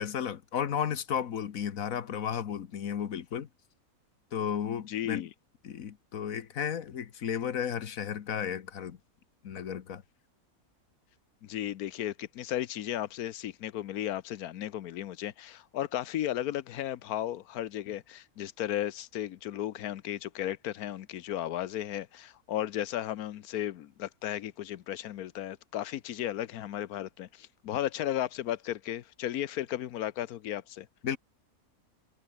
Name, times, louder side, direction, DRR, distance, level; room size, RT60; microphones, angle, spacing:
voice 1, 0.0-3.5 4.3-5.2 5.6-9.0 9.4-10.0 31.0-31.2, left 8 dB, 65° left, 1.5 m, -33 dB
voice 2, 4.9-5.3 11.4-30.9, left 12 dB, 80° left, 1.3 m, -35 dB
omnidirectional pair, 1.6 m